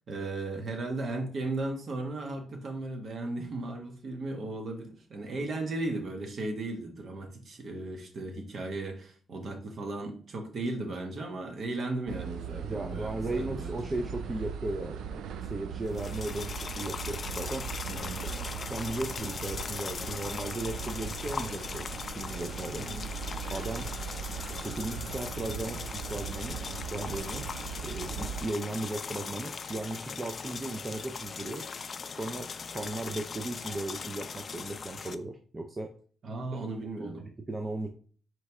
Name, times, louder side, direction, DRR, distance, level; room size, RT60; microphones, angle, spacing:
voice 1, 0.1-14.0 17.9-18.2 22.8-23.0 36.2-37.2, right 2 dB, 55° right, 4 dB, 1.2 m, -36 dB
sound 1, 12.1-28.5, right 7 dB, 90° right, 0.4 m, -39 dB
voice 2, 12.6-17.7 18.2-21.9 22.1-22.9 23.5-23.9 24.6-26.6 26.9-27.4 27.8-31.7 32.1-35.9 36.5-36.6 37.0-37.9, right 2 dB, 25° right, 5 dB, 0.5 m, -36 dB
sound 2, 15.9-35.1, left 5 dB, 45° left, 0.3 m, -39 dB
4.6 x 3.2 x 3.5 m, 0.43 s
cardioid pair, 100°, 0 cm